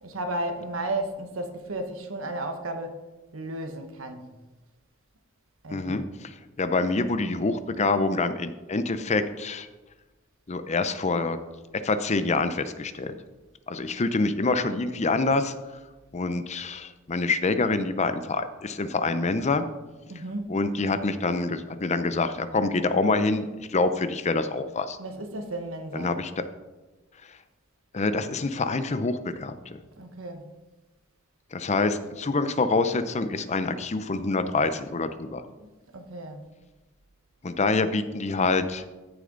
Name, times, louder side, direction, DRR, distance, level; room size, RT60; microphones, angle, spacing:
voice 1, 0.0-3.0 3.3-4.3 5.6-6.0 20.1-20.5 25.0-26.2 30.0-30.5 35.6-36.4, right 1 dB, 80° right, 1.2 m, -34 dB
voice 2, 5.7-9.7 10.5-11.4 11.8-13.1 13.7-15.5 16.1-19.7 20.5-25.0 25.9-26.4 27.3-27.4 27.9-29.8 31.5-35.4 37.4-38.9, left 3 dB, 35° left, 0.6 m, -26 dB
14.0 x 6.8 x 3.9 m
head